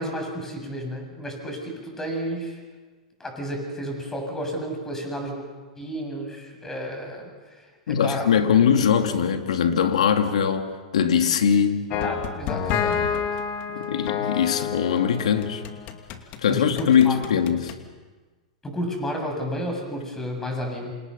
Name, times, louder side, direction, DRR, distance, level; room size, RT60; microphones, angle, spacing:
voice 1, 0.0-2.6 3.2-5.4 5.8-8.3 11.9-13.3 13.7-13.9 16.5-17.2 18.6-20.9, equal, 10° left, 7.6 m, -32 dB
voice 2, 7.9-11.9 13.9-15.6 16.4-17.7, left 7 dB, 80° left, 2.5 m, -21 dB
sound 1, 11.9-16.4 16.8-17.8, left 7 dB, 45° left, 2.6 m, -29 dB
28.5 x 27.5 x 5.7 m
hypercardioid pair, 115°, 4 cm